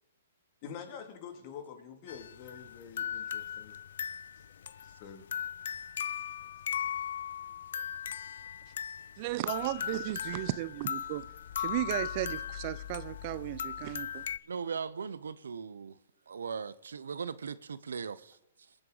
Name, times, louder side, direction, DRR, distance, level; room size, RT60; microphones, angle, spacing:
voice 1, 0.6-3.8 4.8-5.2 6.7-6.8, left 7 dB, 40° left, 2.2 m, -46 dB
sound 1, 2.1-14.4, left 9 dB, 70° left, 0.4 m, -38 dB
voice 2, 9.2-11.2 11.6-14.2, right 16 dB, 40° right, 0.4 m, -35 dB
voice 3, 14.4-16.0 16.3-18.7, right 6 dB, 85° right, 0.6 m, -39 dB
20.5 x 7.7 x 3.9 m
hypercardioid pair, 140°, 0 cm